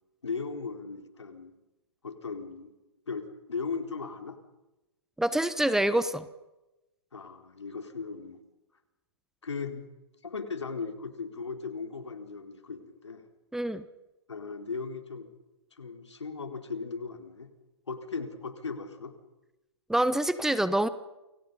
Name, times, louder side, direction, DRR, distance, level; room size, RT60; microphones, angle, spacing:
voice 1, 0.2-1.5 2.0-2.7 3.1-4.4 7.1-8.4 9.4-9.8 10.2-13.2 14.3-15.3 15.7-17.5 17.9-19.1, left 4 dB, 85° left, 6 dB, 4.2 m, -37 dB
voice 2, 5.2-6.3 13.5-13.8 19.9-20.9, right 1 dB, 5° right, 14 dB, 0.9 m, -26 dB
28.5 x 25.5 x 5.5 m, 0.99 s
hypercardioid pair, 130°, 14 cm